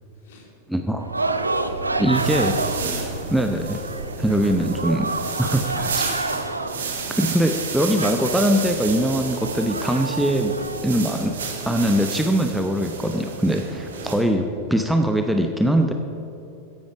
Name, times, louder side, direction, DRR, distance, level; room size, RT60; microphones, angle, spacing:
voice 1, 0.1-0.5 1.7-3.7 7.7-8.0 14.1-14.7, left 1 dB, 55° left, 0 dB, 2.7 m, -37 dB
voice 2, 0.7-1.1 2.0-2.5 3.3-3.8 4.2-5.1 5.4-6.1 7.1-10.5 10.8-11.3 11.6-14.4 14.7-15.9, right 1 dB, 5° right, 5 dB, 0.8 m, -22 dB
sound 1, 1.0-12.0, right 2 dB, 80° right, 0.6 m, -30 dB
sound 2, 1.2-14.2, right 5 dB, 65° right, 1.7 m, -32 dB
14.0 x 10.5 x 5.0 m, 3.0 s
figure-of-eight pair, 90°, 0 cm